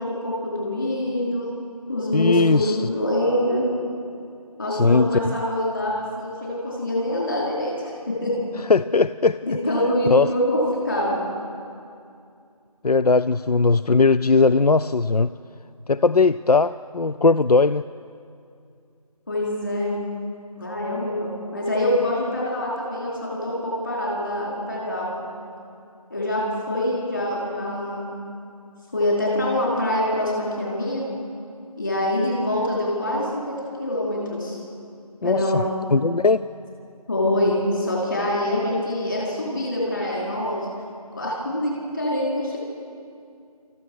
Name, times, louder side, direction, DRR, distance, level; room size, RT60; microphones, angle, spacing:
voice 1, 0.0-1.5 1.9-3.6 4.6-8.3 9.4-11.2 19.3-20.0 20.6-25.2 26.1-28.1 28.9-31.0 31.8-34.6 35.2-35.7 37.1-40.6 41.2-42.6, left 1 dB, 30° left, -5 dB, 4.7 m, -25 dB
voice 2, 2.1-2.9 4.7-5.3 8.7-9.6 10.1-10.3 12.8-15.3 15.9-17.8 35.2-35.6 35.9-36.4, left 4 dB, 80° left, 14 dB, 0.5 m, -19 dB
29.0 x 14.5 x 6.4 m, 2.4 s
figure-of-eight pair, 175°, 20 cm